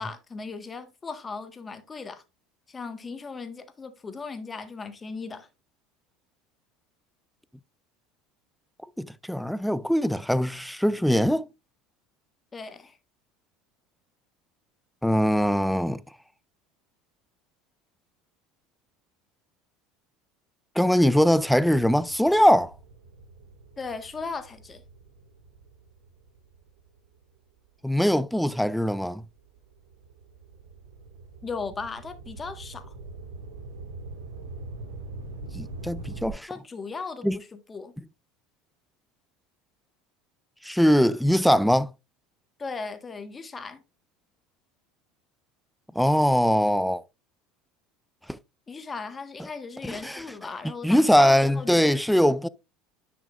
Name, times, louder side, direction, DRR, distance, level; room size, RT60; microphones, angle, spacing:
voice 1, 0.0-2.2 2.7-5.5 12.5-13.0 23.8-24.8 31.4-32.9 36.5-38.0 42.6-43.8 48.7-51.8, left 4 dB, 25° left, 1.5 m, -37 dB
voice 2, 9.0-11.5 15.0-16.0 20.8-22.7 27.8-29.2 35.5-36.5 37.2-37.4 40.6-41.9 46.0-47.0 48.3-48.4 49.9-50.2 50.8-52.5, equal, ahead, 0.5 m, -22 dB
sound 1, 21.5-27.7 28.3-36.3, right 3 dB, 90° right, 1.9 m, -44 dB
10.0 x 6.1 x 2.5 m
hypercardioid pair, 85°, 0 cm